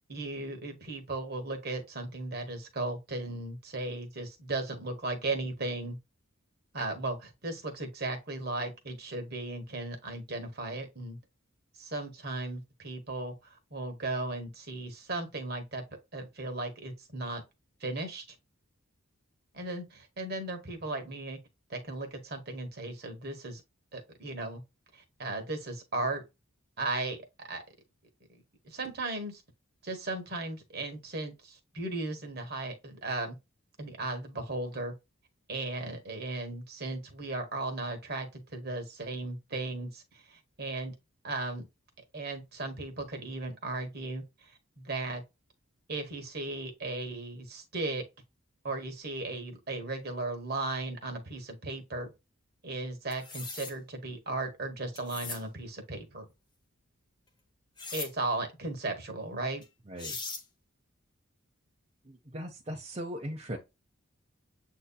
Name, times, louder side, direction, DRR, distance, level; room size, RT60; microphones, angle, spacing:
voice 1, 0.1-6.0 6.7-11.2 11.7-15.8 16.1-17.4 17.8-18.2 19.5-21.4 21.7-23.6 23.9-24.6 24.9-26.2 26.8-27.6 28.3-29.4 29.8-33.4 33.8-34.9 35.5-40.9 41.2-41.7 42.1-45.2 45.9-48.0 48.6-52.1 52.6-56.3 57.9-59.6, right 2 dB, 50° right, 1.2 m, -36 dB
sound 1, 53.1-53.7 55.0-55.4 57.8-58.1 59.6-59.7 60.0-60.4, left 4 dB, 20° left, 0.8 m, -39 dB
voice 2, 59.9-60.2 62.0-63.6, equal, 30° right, 0.7 m, -39 dB
7.7 x 2.8 x 2.3 m
head